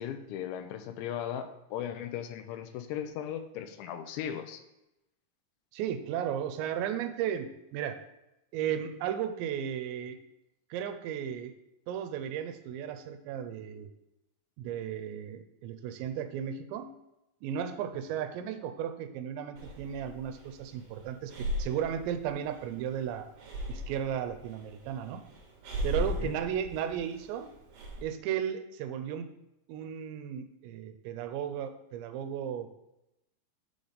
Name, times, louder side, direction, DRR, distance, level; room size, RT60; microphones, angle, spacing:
voice 1, 0.0-4.6 26.2-26.4, left 9 dB, 90° left, 9 dB, 2.9 m, -37 dB
voice 2, 5.7-8.0 8.5-10.2 10.7-11.5 11.9-13.9 14.6-16.9 17.4-23.3 23.7-25.2 25.8-27.5 28.0-29.3 29.7-32.7, right 9 dB, 85° right, 8 dB, 2.8 m, -35 dB
Breathing, 19.6-28.0, equal, 65° right, 2.4 m, -38 dB
7.2 x 4.0 x 5.0 m, 0.89 s
omnidirectional pair, 5.2 m